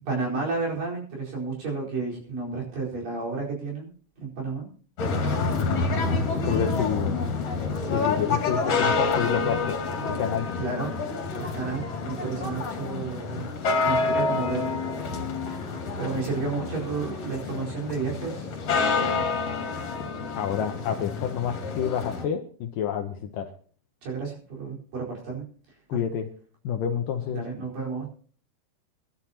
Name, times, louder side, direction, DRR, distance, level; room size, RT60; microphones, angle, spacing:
voice 1, 0.1-3.9 4.2-4.7 10.6-10.9 11.4-13.5 13.8-15.2 15.4-18.6 19.0-19.2 24.0-25.4 27.3-28.1, right 4 dB, 55° right, -3 dB, 6.1 m, -32 dB
sound 1, 5.0-22.2, left 4 dB, 45° left, 3.0 m, -28 dB
voice 2, 6.4-7.2 7.9-9.8 10.0-10.5 20.3-23.5 25.9-26.3 26.6-27.4, left 8 dB, 75° left, 5 dB, 2.1 m, -29 dB
22.5 x 12.0 x 2.9 m, 0.43 s
omnidirectional pair, 4.7 m